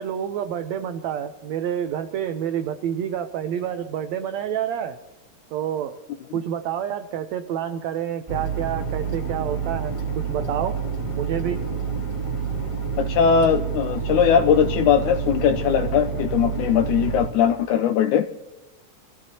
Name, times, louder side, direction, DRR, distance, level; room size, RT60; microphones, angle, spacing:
voice 1, 0.0-5.0 5.5-6.0 6.3-10.8 11.1-11.6, right 9 dB, 90° right, 9 dB, 1.5 m, -28 dB
sound 1, 8.3-17.3, right 6 dB, 10° right, 1.5 m, -28 dB
voice 2, 13.0-18.3, left 8 dB, 80° left, 8 dB, 1.8 m, -20 dB
26.5 x 15.0 x 2.8 m, 1.1 s
omnidirectional pair, 4.0 m